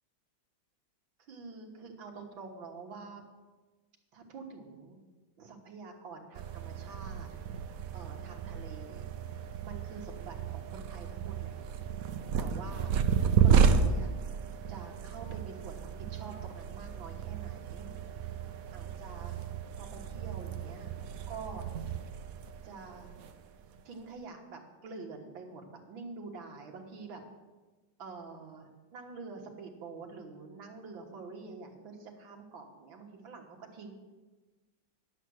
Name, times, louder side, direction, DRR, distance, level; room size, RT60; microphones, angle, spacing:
voice 1, 1.2-3.2 4.1-5.0 5.4-7.3 7.9-9.2 9.6-11.6 12.4-13.0 13.4-14.1 14.7-17.9 18.2-18.4 18.7-19.4 19.8-21.0 21.3-21.6 22.6-23.2 23.8-27.2 28.0-33.9, right 4 dB, 90° right, 1 dB, 2.2 m, -47 dB
sound 1, 6.4-23.8, right 6 dB, 65° right, 0.9 m, -32 dB
11.0 x 7.3 x 6.3 m, 1.2 s
omnidirectional pair, 2.1 m